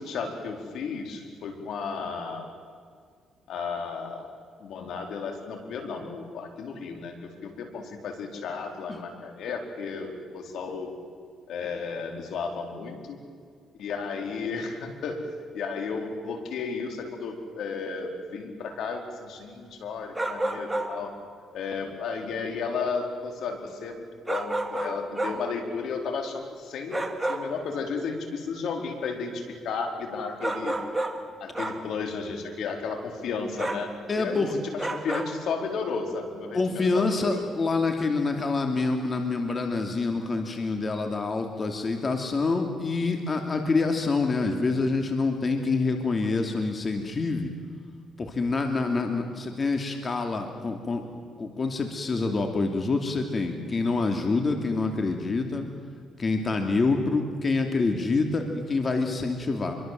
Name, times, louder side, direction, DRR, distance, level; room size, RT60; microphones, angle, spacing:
voice 1, 0.0-2.5 3.5-4.3 4.6-7.1 7.4-10.9 11.5-13.2 13.8-15.3 15.5-21.1 21.5-30.8 31.4-37.4, left 5 dB, 75° left, 4 dB, 4.4 m, -33 dB
sound 1, 18.7-18.8 20.1-21.1 24.3-25.5 26.9-27.6 30.4-31.3 31.5-31.9 33.6-33.9 34.8-35.4, right 2 dB, 15° right, 2.7 m, -30 dB
voice 2, 34.1-34.6 36.5-47.5 48.2-51.1 51.4-55.7 56.2-59.8, left 3 dB, 35° left, 4 dB, 2.8 m, -26 dB
27.5 x 23.5 x 7.8 m, 2.1 s
cardioid pair, 90°, 0 cm